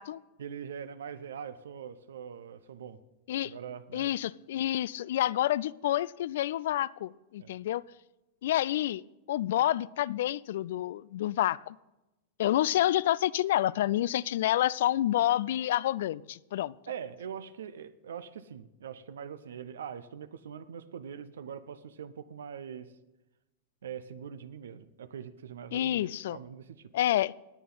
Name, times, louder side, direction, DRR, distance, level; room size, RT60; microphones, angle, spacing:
voice 1, 0.4-3.0 3.4-4.1 7.4-7.5 16.9-22.9 23.8-26.9, right 8 dB, 75° right, 14 dB, 0.8 m, -42 dB
voice 2, 3.9-7.8 8.4-9.0 9.3-11.8 12.4-16.7 25.7-26.4 26.9-27.3, left 13 dB, 65° left, 22 dB, 0.3 m, -28 dB
19.0 x 8.5 x 4.0 m, 1.0 s
hypercardioid pair, 100°, 0 cm